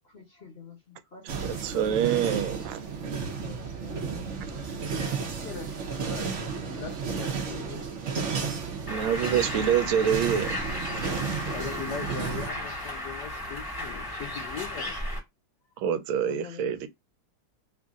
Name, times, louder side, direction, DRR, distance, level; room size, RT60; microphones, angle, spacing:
voice 1, 0.0-2.5 2.9-3.0 3.4-4.4 4.9-5.1 15.9-16.7, left 6 dB, 45° left, 0.9 m, -48 dB
sound 1, 1.3-12.5, right 5 dB, 60° right, 0.7 m, -33 dB
voice 2, 1.3-2.8 8.9-10.6 15.8-16.9, right 9 dB, 80° right, 1.3 m, -26 dB
voice 3, 4.9-7.8 11.4-14.9, left 8 dB, 70° left, 1.0 m, -41 dB
Bird, 8.9-15.2, left 1 dB, 15° left, 0.9 m, -35 dB
3.2 x 2.6 x 3.5 m
omnidirectional pair, 2.2 m